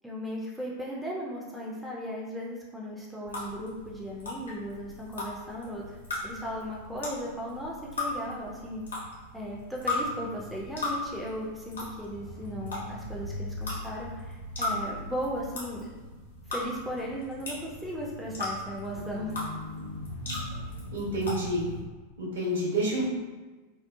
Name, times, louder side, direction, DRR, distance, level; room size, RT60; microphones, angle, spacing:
voice 1, 0.0-6.0 6.2-8.8 9.3-15.9 16.5-19.4, equal, ahead, -5 dB, 0.4 m, -36 dB
sound 1, 3.3-21.8, left 2 dB, 70° left, 0.7 m, -37 dB
voice 2, 20.9-21.7 22.2-23.1, right 1 dB, 65° right, -6 dB, 0.9 m, -28 dB
2.9 x 2.0 x 2.3 m, 1.3 s
figure-of-eight pair, 90°, 0 cm